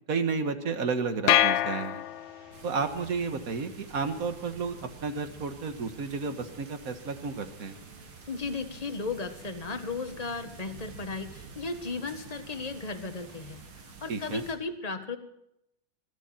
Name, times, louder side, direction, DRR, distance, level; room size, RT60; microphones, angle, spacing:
voice 1, 0.1-2.0 2.6-4.8 5.0-7.8 14.1-14.4, right 4 dB, 50° right, 8 dB, 1.7 m, -31 dB
sound 1, 1.3-2.6, left 12 dB, 80° left, 1.5 m, -25 dB
sound 2, 1.5-13.8, right 1 dB, 90° right, 5.3 m, -56 dB
sound 3, 2.5-14.6, right 5 dB, 70° right, 2.6 m, -49 dB
voice 2, 8.3-13.6 14.0-15.2, left 4 dB, 20° left, 7 dB, 1.3 m, -35 dB
20.5 x 13.5 x 4.4 m, 0.79 s
omnidirectional pair, 2.2 m